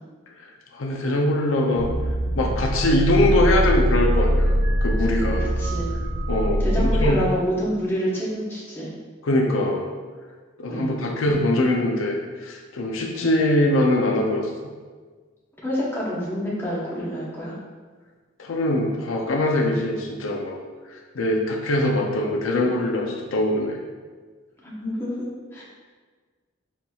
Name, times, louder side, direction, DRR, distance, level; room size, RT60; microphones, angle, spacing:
voice 1, 0.7-1.9 2.3-5.5 6.3-7.2 9.2-9.9 10.6-14.5 18.4-20.6 20.9-23.8, left 1 dB, 85° left, 1 dB, 0.5 m, -22 dB
sound 1, 1.8-7.1, equal, 70° right, 0.5 m, -22 dB
voice 2, 5.6-5.9 6.6-8.9 10.7-11.0 13.1-13.3 15.6-17.5 24.6-25.6, equal, 10° left, -7 dB, 0.9 m, -28 dB
4.4 x 4.0 x 2.3 m, 1.5 s
head